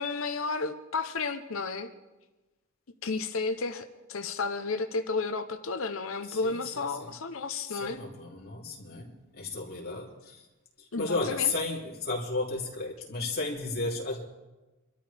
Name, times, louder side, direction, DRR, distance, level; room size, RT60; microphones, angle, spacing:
voice 1, 0.0-1.9 3.0-8.0 10.9-11.5, left 4 dB, 70° left, 8 dB, 0.8 m, -32 dB
voice 2, 6.3-7.1 7.7-10.4 10.8-14.2, left 3 dB, 45° left, -2 dB, 3.2 m, -34 dB
26.0 x 13.0 x 3.5 m, 1.1 s
head